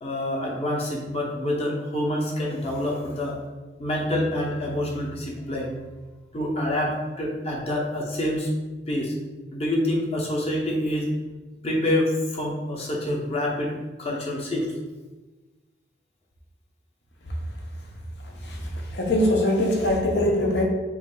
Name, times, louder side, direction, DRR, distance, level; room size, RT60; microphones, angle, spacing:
voice 1, 0.0-3.4 3.8-5.7 6.3-8.5 8.9-9.1 9.5-11.1 11.6-14.7, left 1 dB, 35° left, -2 dB, 0.9 m, -27 dB
voice 2, 18.9-20.6, left 1 dB, 65° left, 0 dB, 0.8 m, -22 dB
4.1 x 3.2 x 3.8 m, 1.2 s
head